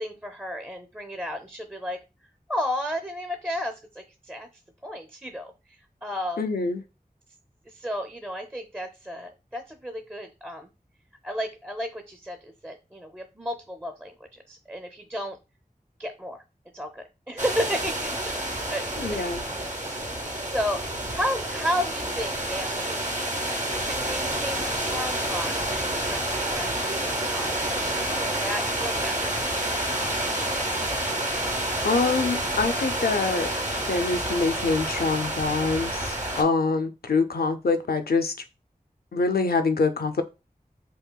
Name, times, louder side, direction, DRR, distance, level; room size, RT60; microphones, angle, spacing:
voice 1, 0.0-2.0 2.5-4.5 4.8-6.5 7.7-10.7 11.2-15.4 16.0-16.4 16.7-18.4 18.7-20.0 20.5-23.0 23.8-27.8 28.1-29.3, equal, 15° right, 5 dB, 0.5 m, -33 dB
voice 2, 6.4-6.8 19.0-19.4 31.8-33.5 33.9-38.3 39.1-40.2, left 4 dB, 80° left, 8 dB, 0.5 m, -25 dB
sound 1, 17.4-36.4, right 1 dB, 50° right, 0.8 m, -29 dB
5.4 x 2.3 x 2.2 m, 0.28 s
wide cardioid pair, 45°, 16 cm